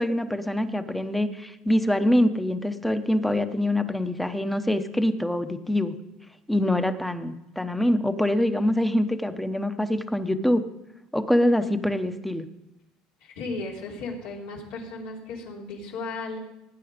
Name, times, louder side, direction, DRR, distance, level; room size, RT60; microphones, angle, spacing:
voice 1, 0.0-5.9 6.5-10.6 11.1-12.5, left 1 dB, 5° left, 9 dB, 0.9 m, -24 dB
voice 2, 13.2-16.4, left 3 dB, 80° left, -2 dB, 3.9 m, -35 dB
18.5 x 9.2 x 5.1 m, 0.92 s
cardioid pair, 115°, 2 cm